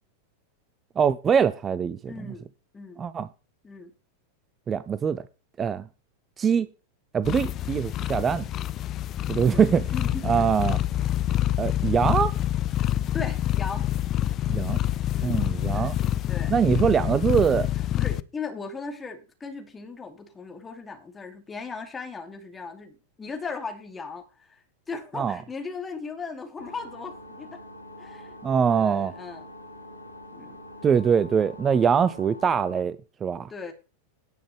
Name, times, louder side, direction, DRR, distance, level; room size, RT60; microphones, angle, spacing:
voice 1, 1.0-2.3 3.0-3.3 4.7-5.2 5.6-5.9 6.4-6.7 7.1-8.4 9.3-9.9 10.2-10.8 11.6-12.3 14.5-14.8 15.2-16.0 16.5-17.7 25.1-25.4 28.4-29.1 30.8-33.0 33.2-33.5, right 7 dB, 20° right, 0.5 m, -23 dB
voice 2, 2.1-3.1 3.6-3.9 6.5-6.6 9.4-9.6 9.9-10.5 12.8-13.9 15.1-15.4 15.7-16.0 16.3-16.6 17.9-27.6 28.0-28.4 28.7-29.4 30.3-30.6 33.5-33.7, left 4 dB, 15° left, 2.5 m, -38 dB
sound 1, 7.2-18.2, left 13 dB, 30° left, 0.5 m, -27 dB
sound 2, 26.6-32.8, left 1 dB, 85° right, 3.3 m, -45 dB
17.5 x 6.2 x 3.3 m
figure-of-eight pair, 90°, 0 cm